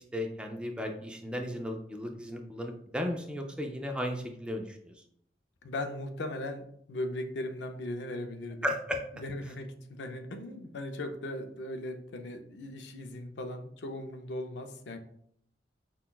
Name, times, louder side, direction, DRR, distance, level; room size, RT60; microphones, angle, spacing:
voice 1, 0.1-4.9 8.6-9.0, equal, 5° right, 3 dB, 0.3 m, -35 dB
voice 2, 5.6-8.7 9.2-15.0, left 1 dB, 75° left, 6 dB, 0.5 m, -38 dB
5.7 x 2.2 x 2.2 m, 0.68 s
head